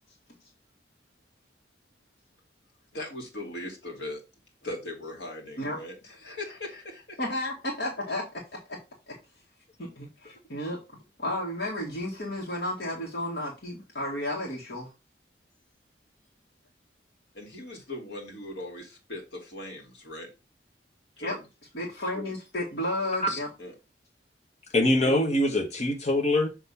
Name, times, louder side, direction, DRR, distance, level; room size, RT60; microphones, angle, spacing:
voice 1, 2.9-4.2 4.6-7.2 17.3-20.3 21.2-21.4 23.6-23.7, left 1 dB, 85° left, 2.2 m, -39 dB
voice 2, 7.2-8.2 8.7-8.8 9.1-9.2 9.8-10.8 11.2-14.9 21.2-21.4 21.7-23.5 25.0-25.2, left 1 dB, 65° left, 1.9 m, -32 dB
voice 3, 24.7-26.5, left 1 dB, 40° left, 1.4 m, -23 dB
6.6 x 3.2 x 5.5 m
head